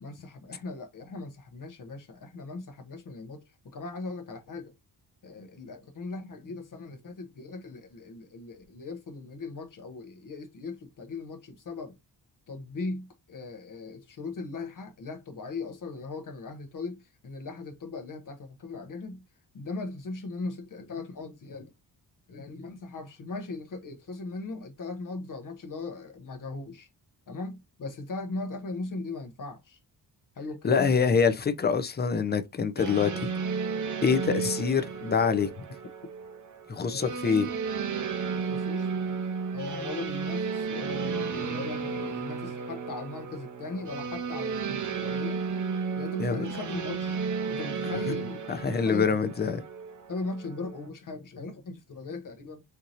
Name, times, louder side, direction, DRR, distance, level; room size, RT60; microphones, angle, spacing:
voice 1, 0.0-4.7 5.2-12.0 12.5-19.2 19.5-21.7 22.3-26.9 27.3-29.8 30.3-31.0 36.8-37.4 38.4-39.2 39.5-45.4 46.0-47.2 47.5-48.4 48.7-49.2 50.1-52.6, left 3 dB, 50° left, 0.8 m, -39 dB
voice 2, 30.6-33.3 34.0-35.5 36.7-37.5 46.2-46.4 48.1-48.2 48.5-49.6, left 6 dB, 25° left, 0.5 m, -25 dB
sound 1, 32.8-50.9, right 5 dB, 45° right, 0.7 m, -33 dB
4.5 x 2.7 x 2.5 m
wide cardioid pair, 145°, 42 cm